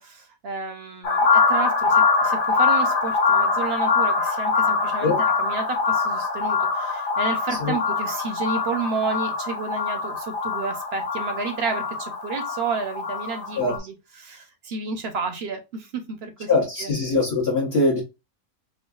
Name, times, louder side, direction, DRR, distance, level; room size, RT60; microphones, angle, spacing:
voice 1, 0.0-16.9, right 4 dB, 55° right, 0.8 m, -31 dB
sound 1, 1.0-13.8, left 4 dB, 75° left, 1.3 m, -23 dB
voice 2, 16.5-18.0, left 3 dB, 50° left, 1.1 m, -22 dB
4.5 x 2.2 x 2.3 m
omnidirectional pair, 1.5 m